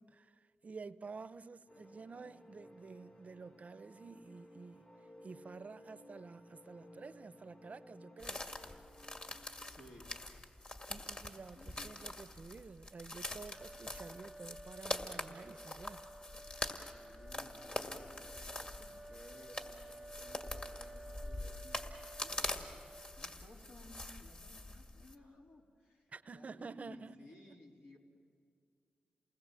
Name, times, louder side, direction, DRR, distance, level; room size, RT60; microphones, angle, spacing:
voice 1, 0.0-4.8 5.2-8.4 10.9-16.1 26.1-27.3, right 4 dB, 50° right, 0.5 m, -50 dB
sound 1, 1.7-9.3, left 1 dB, 60° left, 5.1 m, -58 dB
sound 2, 8.2-25.1, left 2 dB, 40° left, 2.2 m, -44 dB
voice 2, 9.7-10.1 11.5-12.0 16.7-28.0, left 1 dB, 90° left, 3.4 m, -59 dB
sound 3, 13.5-23.4, right 2 dB, 10° right, 0.7 m, -54 dB
28.5 x 20.0 x 7.6 m
cardioid pair, 55°, 3 cm